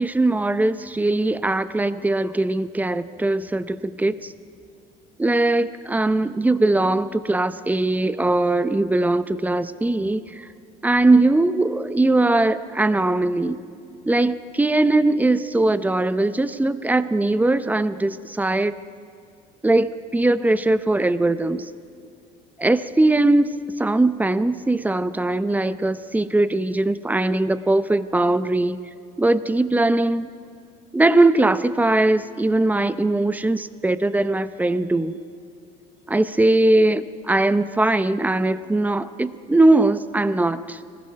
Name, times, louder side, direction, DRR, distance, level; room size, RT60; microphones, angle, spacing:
voice 1, 0.0-4.3 5.2-10.5 10.8-13.6 14.1-18.7 19.6-21.7 22.6-23.5 23.8-28.8 29.2-30.3 30.9-35.2 36.1-40.8, right 2 dB, 10° right, 13 dB, 0.7 m, -20 dB
25.0 x 19.5 x 5.8 m, 2.3 s
cardioid pair, 120°, 21 cm